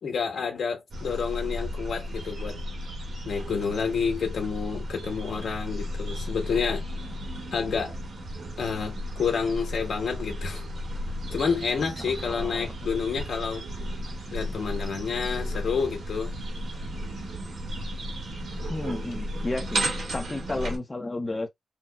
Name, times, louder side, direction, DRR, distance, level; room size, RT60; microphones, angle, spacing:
voice 1, 0.0-2.6 3.2-6.8 7.5-8.0 8.6-10.6 11.3-13.7 14.3-16.3, left 6 dB, 80° left, 1.4 m, -29 dB
sound 1, 0.9-20.8, equal, 80° right, 1.5 m, -34 dB
voice 2, 12.0-12.7 18.7-19.9 20.1-21.5, left 2 dB, 20° left, 0.6 m, -32 dB
4.1 x 2.1 x 2.2 m
wide cardioid pair, 155°, 0 cm